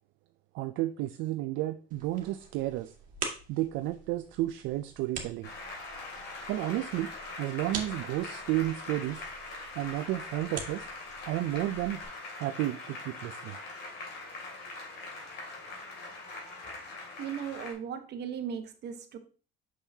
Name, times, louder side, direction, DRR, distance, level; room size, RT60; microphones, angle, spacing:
voice 1, 0.5-2.9 3.5-5.5 6.5-7.1 7.4-9.2 9.8-10.9 11.3-12.0 12.4-13.6, right 15 dB, 80° right, 9 dB, 0.4 m, -32 dB
sound 1, 1.9-12.1, right 5 dB, 45° right, 1.9 m, -45 dB
Applause, 5.4-17.7, left 2 dB, 60° left, 2.6 m, -42 dB
voice 2, 17.2-19.2, right 8 dB, 60° right, 8 dB, 1.1 m, -37 dB
6.3 x 5.5 x 2.7 m, 0.38 s
cardioid pair, 95°, 19 cm